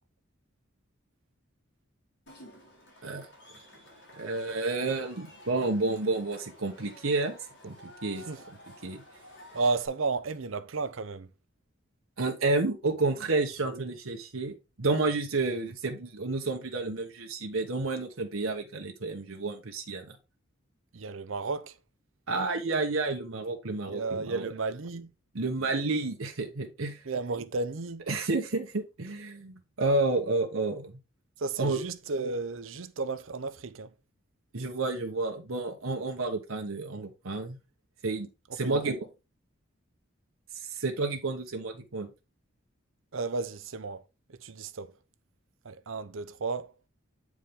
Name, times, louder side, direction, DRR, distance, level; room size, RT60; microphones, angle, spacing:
Cheering / Crowd, 2.3-9.9, left 1 dB, 60° left, 4.0 m, -52 dB
voice 1, 4.1-7.3 7.6-8.2 8.8-9.0 12.2-20.2 22.3-24.5 25.3-27.0 28.1-31.0 31.6-31.8 34.5-37.6 38.0-39.1 40.6-42.1, right 3 dB, 90° right, 1.2 m, -30 dB
voice 2, 9.5-11.3 13.6-13.9 20.9-21.7 23.9-25.1 27.0-28.0 31.4-33.9 38.5-38.8 43.1-44.0 44.3-44.9 45.6-46.7, right 3 dB, 75° right, 0.7 m, -33 dB
8.3 x 4.9 x 3.6 m
head